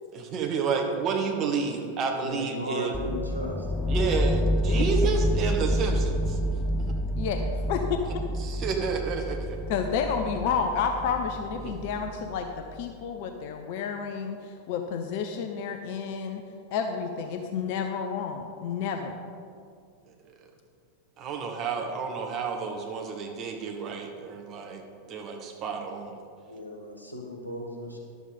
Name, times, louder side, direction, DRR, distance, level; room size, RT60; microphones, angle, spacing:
voice 1, 0.1-3.1 3.9-6.9 8.4-9.6 11.5-11.8 21.2-26.2, right 5 dB, 35° right, 2 dB, 1.4 m, -30 dB
voice 2, 2.2-4.0 4.7-4.9 26.5-28.0, left 1 dB, 90° left, 0 dB, 1.6 m, -36 dB
sound 1, 2.9-12.7, equal, 5° left, 0.3 m, -28 dB
voice 3, 7.2-7.8 9.7-16.4 16.7-19.2, left 6 dB, 50° left, 5 dB, 0.7 m, -30 dB
11.5 x 7.3 x 5.3 m, 2.3 s
figure-of-eight pair, 90°, 0 cm